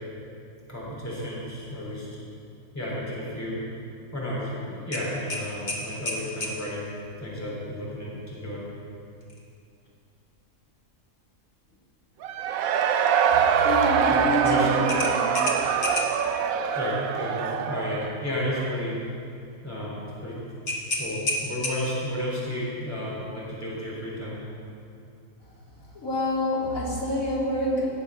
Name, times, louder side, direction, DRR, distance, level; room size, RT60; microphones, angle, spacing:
voice 1, 0.7-2.2 2.7-3.6 4.1-8.7 13.3-13.4 14.1-14.7 16.7-19.0 19.6-20.6 21.0-24.4, left 1 dB, 10° left, -6 dB, 3.4 m, -32 dB
sound 1, 4.9-6.6 9.2-9.4 9.9-10.0 14.9-16.3 20.7-22.1, left 1 dB, 55° left, 1.9 m, -30 dB
Cheering / Crowd, 12.2-18.9, right 8 dB, 85° right, 1.1 m, -24 dB
voice 2, 13.6-14.5 14.7-15.3 25.9-27.9, equal, 75° left, -6 dB, 3.2 m, -26 dB
17.5 x 6.9 x 5.6 m, 2.6 s
omnidirectional pair, 1.4 m